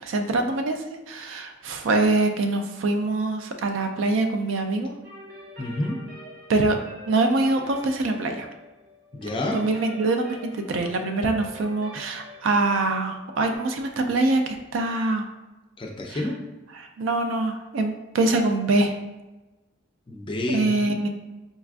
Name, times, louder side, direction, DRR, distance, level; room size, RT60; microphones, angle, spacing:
voice 1, 0.0-4.9 6.5-6.8 7.1-8.5 9.5-15.2 16.1-16.2 16.7-18.9 20.5-21.1, right 2 dB, 75° right, 5 dB, 0.4 m, -24 dB
sound 1, 5.0-13.6, equal, 45° right, 0.9 m, -45 dB
voice 2, 5.6-6.0 9.1-9.6 12.0-12.2 15.8-16.4 20.1-20.7, left 1 dB, 25° left, 0 dB, 0.4 m, -29 dB
4.0 x 2.3 x 2.4 m, 1.1 s
head